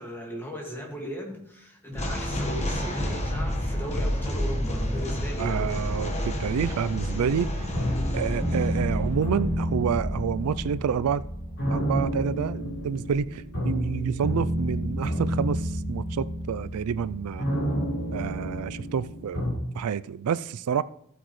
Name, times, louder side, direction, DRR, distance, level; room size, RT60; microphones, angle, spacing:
voice 1, 0.0-5.8, equal, 10° left, 1.9 m, -37 dB
sound 1, 1.9-13.2, equal, 30° left, 1.3 m, -31 dB
voice 2, 5.4-7.5 8.1-11.2 11.7-17.4 18.1-19.4 19.7-20.8, right 7 dB, 90° right, 0.4 m, -28 dB
sound 2, 7.1-19.5, equal, 55° left, 4.6 m, -30 dB
15.0 x 8.1 x 3.2 m
head